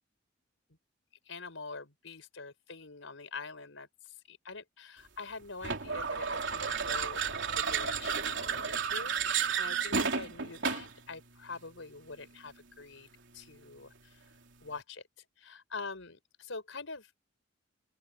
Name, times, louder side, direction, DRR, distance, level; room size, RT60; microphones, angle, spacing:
voice 1, 1.2-14.2 14.6-15.0 15.4-17.2, left 4 dB, 80° left, 4.8 m, -45 dB
sound 1, 5.6-11.0, right 6 dB, 65° right, 3.6 m, -32 dB
open air
head